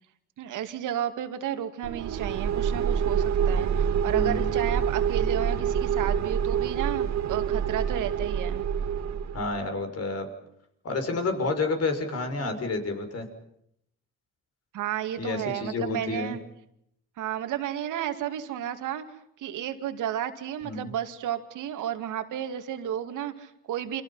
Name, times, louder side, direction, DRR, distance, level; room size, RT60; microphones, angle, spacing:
voice 1, 0.4-8.6 14.7-16.4 17.2-19.0 19.4-24.0, right 10 dB, 85° right, 8 dB, 2.5 m, -32 dB
sound 1, 1.8-9.6, right 8 dB, 65° right, 2.1 m, -26 dB
voice 2, 4.0-4.5 9.3-10.3 10.8-13.3 15.2-16.3 20.6-20.9, left 3 dB, 55° left, 6 dB, 6.2 m, -30 dB
29.0 x 26.5 x 5.8 m, 0.74 s
cardioid pair, 90°, 30 cm